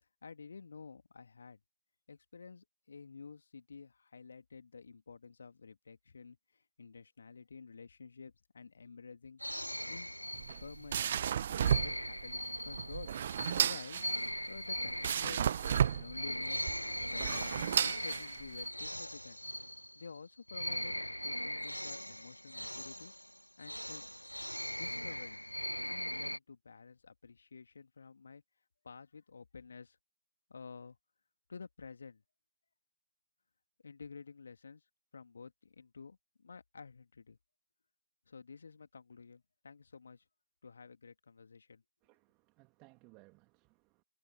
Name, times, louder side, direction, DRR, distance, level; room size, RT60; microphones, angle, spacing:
voice 1, 0.2-1.6 2.1-9.4 9.9-10.1 10.6-13.1 13.6-14.0 14.5-15.5 15.9-19.4 19.9-23.1 23.6-24.0 24.7-25.4 25.9-28.4 28.8-30.0 30.5-31.0 31.5-32.2 33.8-34.8 35.1-37.4 38.3-40.2 40.6-41.8, left 5 dB, 55° left, 2.6 m, -51 dB
sound 1, 9.4-11.0 11.6-20.2 20.5-26.4, equal, 85° left, 0.6 m, -40 dB
sound 2, 10.3-18.7, right 9 dB, 40° right, 1.0 m, -33 dB
voice 2, 42.0-44.0, right 27 dB, 20° right, 2.8 m, -63 dB
figure-of-eight pair, 135°, 0 cm